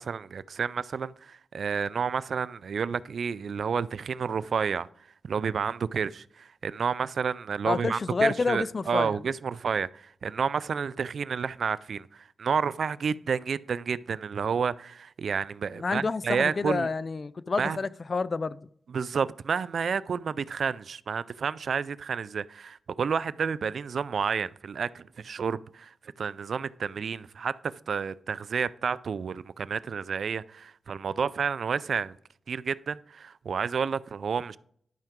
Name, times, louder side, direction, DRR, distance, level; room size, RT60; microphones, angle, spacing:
voice 1, 0.0-4.9 5.3-16.9 17.6-17.8 18.9-32.2 32.5-34.6, right 6 dB, 75° right, 0.3 m, -30 dB
voice 2, 7.6-9.2 15.7-18.6, left 4 dB, 50° left, 0.4 m, -28 dB
11.5 x 5.8 x 3.6 m
cardioid pair, 75°, 0 cm